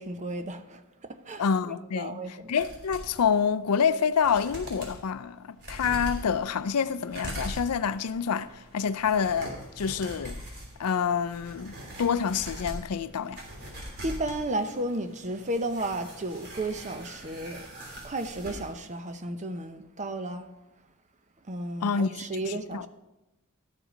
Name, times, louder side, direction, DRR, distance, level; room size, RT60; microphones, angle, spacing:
voice 1, 0.0-1.4 1.9-2.5 14.0-17.7 18.0-20.5 21.5-22.9, right 1 dB, 35° right, 0.8 m, -33 dB
voice 2, 1.4-2.2 2.5-10.4 10.8-13.4 21.8-22.9, left 6 dB, 85° left, 0.5 m, -27 dB
sound 1, 2.6-3.2 3.8-3.9 4.1-5.0 5.6-18.7 19.0-19.1, equal, 50° right, 3.2 m, -42 dB
12.5 x 8.0 x 5.1 m
head